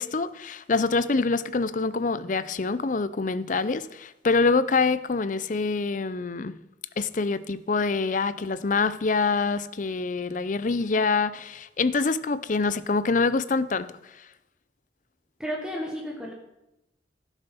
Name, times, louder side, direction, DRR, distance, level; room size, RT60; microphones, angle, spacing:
voice 1, 0.0-6.6 7.0-13.9, left 4 dB, 45° left, 0.5 m, -25 dB
voice 2, 15.4-16.3, equal, 5° right, 1.3 m, -32 dB
16.0 x 7.1 x 5.6 m
head